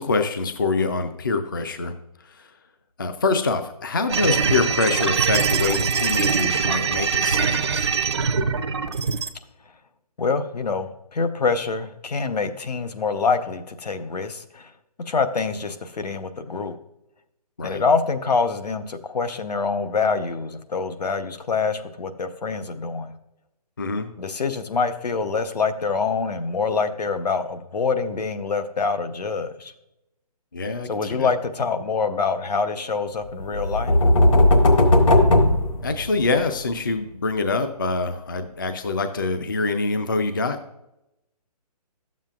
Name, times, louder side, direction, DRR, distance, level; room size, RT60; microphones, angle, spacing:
voice 1, 0.0-2.6 3.0-8.0 17.6-17.8 23.8-24.1 30.5-31.3 35.8-40.6, left 3 dB, 30° left, 8 dB, 0.4 m, -25 dB
sound 1, 4.1-9.3, right 6 dB, 40° right, 0.5 m, -22 dB
voice 2, 10.2-14.7 15.0-16.8 17.6-23.1 24.2-29.7 30.9-34.0, left 4 dB, 75° left, 9 dB, 0.9 m, -25 dB
sound 2, 33.5-36.4, left 1 dB, 50° left, 1.3 m, -16 dB
11.5 x 7.3 x 2.4 m, 0.87 s
hypercardioid pair, 170°, 21 cm